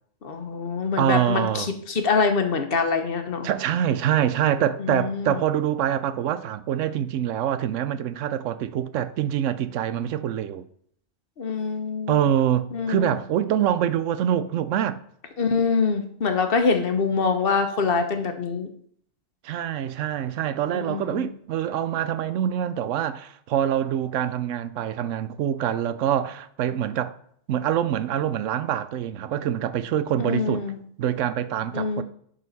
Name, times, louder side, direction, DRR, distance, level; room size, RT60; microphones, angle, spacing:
voice 1, 0.2-3.5 4.8-5.4 11.4-12.2 12.7-13.1 15.4-18.7 20.7-21.3 30.2-30.8 31.7-32.0, left 4 dB, 50° left, 1.1 m, -25 dB
voice 2, 1.0-1.7 3.4-10.6 12.1-15.0 19.4-27.1 27.5-30.6 31.0-32.0, right 10 dB, 85° right, 1.0 m, -25 dB
11.5 x 4.1 x 4.1 m
omnidirectional pair, 1.3 m